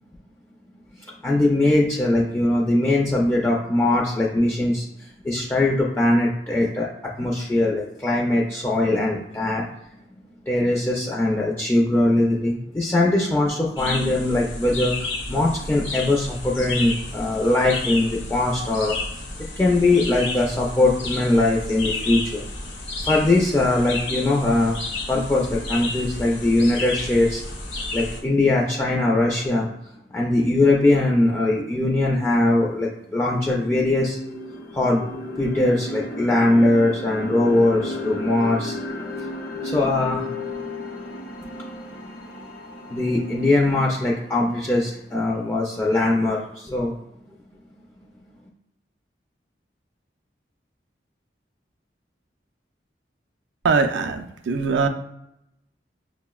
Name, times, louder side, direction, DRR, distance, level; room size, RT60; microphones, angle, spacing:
voice 1, 1.2-4.9 5.2-6.9 7.2-9.7 10.5-19.0 19.6-22.4 23.0-24.8 25.1-27.4 27.9-29.7 30.1-34.2 34.7-35.0 35.4-38.8 39.6-40.3 42.9-46.9, left 2 dB, 15° left, -3 dB, 0.3 m, -21 dB
sound 1, 13.8-28.2, left 2 dB, 90° left, 0.8 m, -32 dB
sound 2, 32.8-32.9 33.3-45.4, left 2 dB, 55° left, 0.6 m, -34 dB
voice 2, 53.6-54.9, right 4 dB, 75° right, 7 dB, 0.3 m, -21 dB
5.9 x 2.0 x 2.3 m, 0.83 s
head